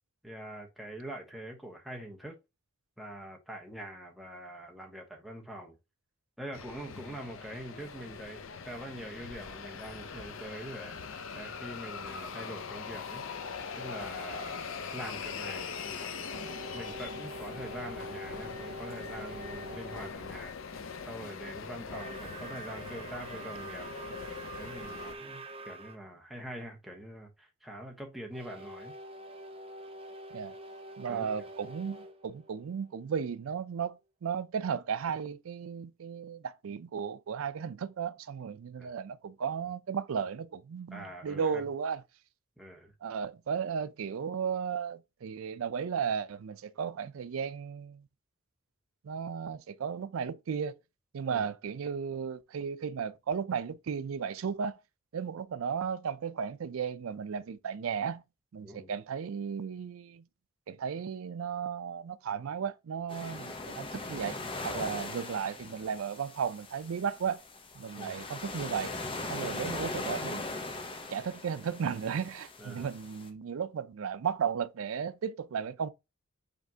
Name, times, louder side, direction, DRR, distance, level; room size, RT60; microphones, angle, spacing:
voice 1, 0.2-2.4 3.0-5.8 6.4-13.2 13.8-16.3 16.7-20.5 21.1-23.9 24.6-28.9 31.1-31.5 38.8-38.9 40.9-41.7 42.6-42.9 51.3-51.5 58.6-58.9 68.0-68.2 72.6-72.9, right 1 dB, ahead, 0.9 m, -44 dB
sound 1, 6.5-25.1, left 5 dB, 75° left, 0.6 m, -42 dB
sound 2, 16.3-20.2 21.8-26.0 28.3-33.2, right 2 dB, 25° right, 0.4 m, -45 dB
voice 2, 31.0-42.0 43.0-48.0 49.0-50.7 51.1-54.8 55.1-58.2 58.5-60.2 60.7-64.4 64.6-67.4 67.7-68.9 69.2-70.4 71.1-75.9, right 7 dB, 90° right, 0.4 m, -35 dB
sound 3, 63.1-73.3, left 2 dB, 25° left, 0.7 m, -40 dB
5.1 x 3.3 x 2.8 m
head